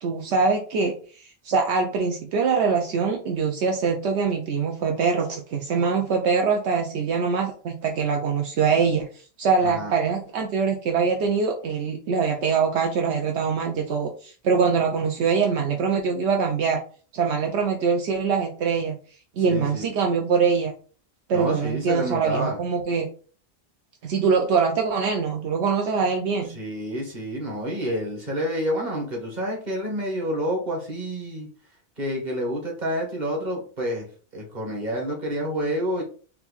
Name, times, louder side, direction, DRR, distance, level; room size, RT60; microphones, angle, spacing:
voice 1, 0.0-16.8 17.1-18.9 19.4-20.7 21.3-23.1 24.0-26.5, right 5 dB, 75° right, 2 dB, 0.9 m, -23 dB
voice 2, 19.5-19.9 21.3-22.6 26.5-31.5 32.0-34.0 34.3-36.0, equal, 40° right, -1 dB, 1.7 m, -28 dB
4.5 x 2.7 x 4.0 m, 0.41 s
omnidirectional pair, 1.2 m